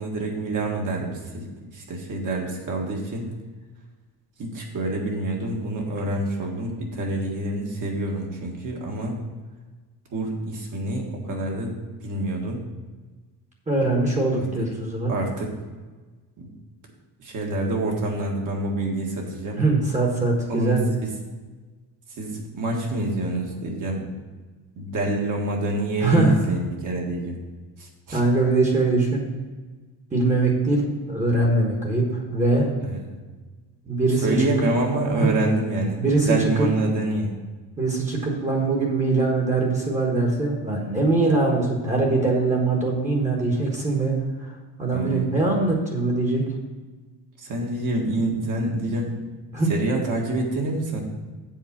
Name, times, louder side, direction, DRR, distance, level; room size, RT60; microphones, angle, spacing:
voice 1, 0.0-3.3 4.4-9.2 10.1-11.7 12.0-12.6 14.3-14.4 15.1-15.5 16.4-16.5 17.2-19.6 20.5-21.1 22.2-24.1 24.7-27.4 27.8-28.2 32.8-33.1 34.2-37.3 44.9-45.3 47.4-49.2 49.7-51.0, right 2 dB, 50° right, 0 dB, 1.6 m, -27 dB
voice 2, 13.7-15.1 19.5-20.9 26.0-26.4 28.1-29.2 30.1-32.7 33.8-34.3 35.1-35.3 36.0-36.3 37.8-44.1 44.4-44.5 44.8-46.4 49.5-49.7, right 2 dB, 15° right, -1 dB, 1.3 m, -22 dB
7.4 x 4.8 x 7.2 m, 1.3 s
cardioid pair, 170°, 40 cm